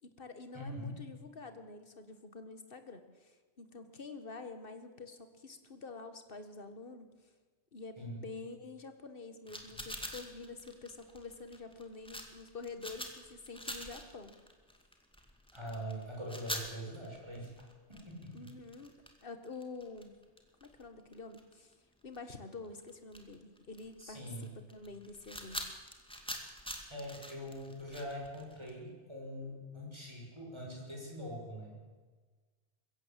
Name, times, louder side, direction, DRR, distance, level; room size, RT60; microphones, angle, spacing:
voice 1, 0.0-7.1 7.7-14.4 18.3-18.9 19.2-20.2 20.6-21.8 22.0-25.7, left 3 dB, 55° left, 9 dB, 1.9 m, -48 dB
voice 2, 0.5-1.1 8.0-8.2 15.5-17.5 17.9-18.5 24.0-24.5 26.9-31.8, equal, 25° right, -2 dB, 6.4 m, -43 dB
sound 1, 9.5-21.7 22.0-22.2 22.5-28.7, equal, 5° left, 2.2 m, -45 dB
22.5 x 16.0 x 7.6 m, 1.4 s
omnidirectional pair, 1.2 m